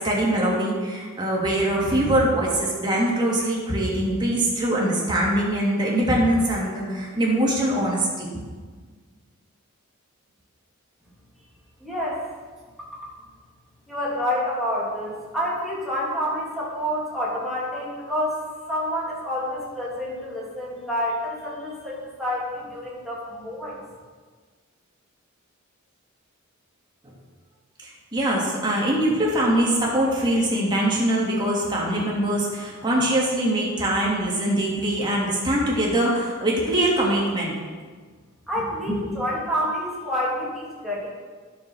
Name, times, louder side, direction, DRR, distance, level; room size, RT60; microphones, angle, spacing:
voice 1, 0.0-8.4 27.8-37.5 38.9-39.0, right 1 dB, 20° right, -4 dB, 2.7 m, -23 dB
voice 2, 11.8-12.3 13.9-23.8 38.5-41.1, equal, ahead, -7 dB, 3.2 m, -28 dB
11.5 x 6.7 x 6.3 m, 1.5 s
head